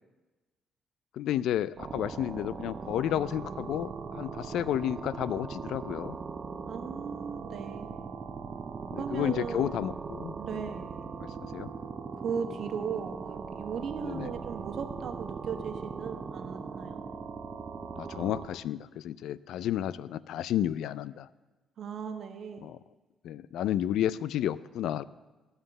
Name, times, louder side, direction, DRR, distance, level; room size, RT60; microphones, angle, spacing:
voice 1, 1.1-6.2 8.9-10.3 11.4-11.7 14.0-14.3 18.0-21.3 22.6-22.8 23.2-25.0, left 11 dB, 80° left, 18 dB, 0.4 m, -31 dB
sound 1, 1.8-18.5, right 5 dB, 40° right, 1.0 m, -39 dB
voice 2, 6.7-8.0 8.9-9.7 10.4-11.0 12.2-17.1 21.8-22.7, right 6 dB, 65° right, 6 dB, 1.3 m, -37 dB
14.5 x 5.6 x 7.9 m, 1.2 s
cardioid pair, 90°, 0 cm